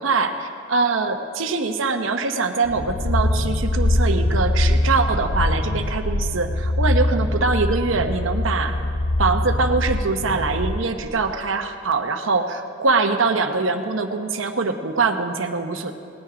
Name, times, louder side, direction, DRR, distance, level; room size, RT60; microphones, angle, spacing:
voice 1, 0.0-8.7 9.2-15.9, right 4 dB, 85° right, 7 dB, 0.9 m, -23 dB
sound 1, 2.6-11.1, left 1 dB, 70° left, 0.9 m, -23 dB
18.5 x 9.5 x 5.0 m, 2.4 s
head